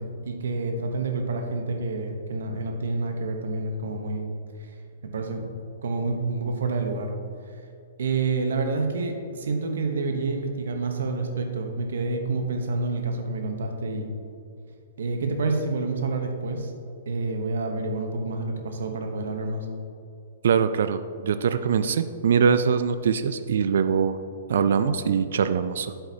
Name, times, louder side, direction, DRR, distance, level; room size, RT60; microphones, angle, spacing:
voice 1, 0.0-4.3 4.6-4.7 5.0-5.5 5.8-7.1 7.4-7.6 8.0-14.1 15.0-16.7 17.1-19.7, right 3 dB, 85° right, 4 dB, 0.9 m, -28 dB
voice 2, 20.4-24.2 24.5-25.9, right 6 dB, 65° right, 11 dB, 0.3 m, -23 dB
8.1 x 7.8 x 2.8 m, 2.5 s
hypercardioid pair, 175°, 0 cm